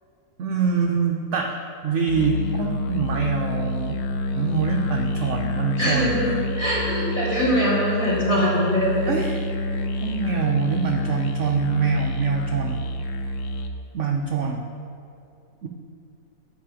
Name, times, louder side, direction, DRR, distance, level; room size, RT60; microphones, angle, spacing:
voice 1, 0.4-1.6 1.8-4.0 4.3-6.2 9.1-9.4 10.0-12.8 13.9-14.7 15.6-15.7, right 5 dB, 70° right, 2 dB, 0.7 m, -24 dB
Musical instrument, 2.1-13.8, left 2 dB, 70° left, 0.7 m, -28 dB
voice 2, 5.8-9.1, equal, 25° left, -7 dB, 2.3 m, -23 dB
8.4 x 5.2 x 7.5 m, 2.6 s
omnidirectional pair, 1.9 m